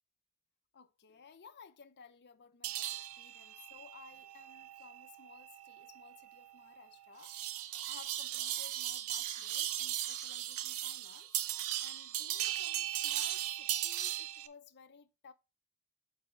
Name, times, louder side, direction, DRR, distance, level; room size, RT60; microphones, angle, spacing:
voice 1, 0.7-11.3 11.8-15.3, left 6 dB, 50° left, 0.7 m, -57 dB
sound 1, 2.6-14.5, right 13 dB, 70° right, 0.6 m, -38 dB
8.3 x 4.3 x 3.7 m
head